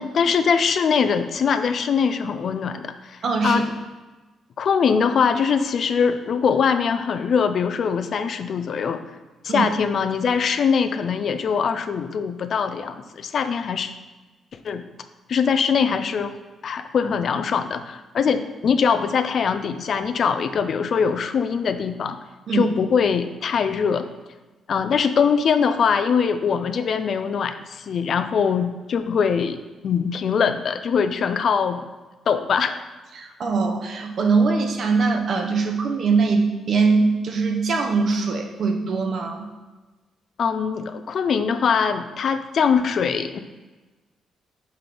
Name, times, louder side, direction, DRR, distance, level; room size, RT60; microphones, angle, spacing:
voice 1, 0.0-3.7 4.6-9.0 9.4-13.9 14.6-14.8 15.3-16.4 16.6-22.2 22.5-24.1 24.7-29.6 29.8-31.9 32.3-32.8 40.4-43.4, left 6 dB, 60° left, 9 dB, 0.4 m, -22 dB
voice 2, 3.2-3.6 9.5-9.7 22.5-22.7 33.2-39.5, right 4 dB, 60° right, 3 dB, 0.9 m, -22 dB
5.8 x 5.4 x 3.5 m, 1.2 s
cardioid pair, 70°, 0 cm